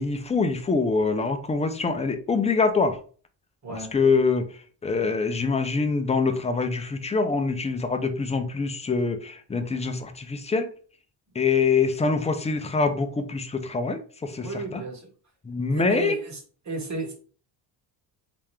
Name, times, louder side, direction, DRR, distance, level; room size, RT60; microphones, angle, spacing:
voice 1, 0.0-3.0 3.7-4.4 4.8-10.7 11.4-14.8 15.5-16.1, left 4 dB, 15° left, 8 dB, 0.4 m, -25 dB
voice 2, 3.6-3.9 14.4-15.1 15.7-17.1, right 2 dB, 40° right, 1 dB, 1.4 m, -33 dB
3.5 x 2.9 x 3.2 m, 0.41 s
cardioid pair, 130°, 46 cm